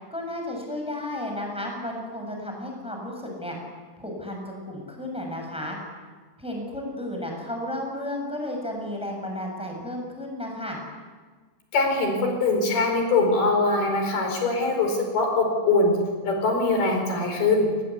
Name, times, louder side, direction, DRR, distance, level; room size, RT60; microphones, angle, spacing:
voice 1, 0.1-3.6 4.0-5.8 6.4-10.8, left 1 dB, ahead, 1 dB, 6.3 m, -33 dB
voice 2, 11.7-16.0 16.2-17.7, left 3 dB, 70° left, 3 dB, 6.6 m, -22 dB
28.0 x 19.5 x 8.5 m, 1.4 s
omnidirectional pair, 4.6 m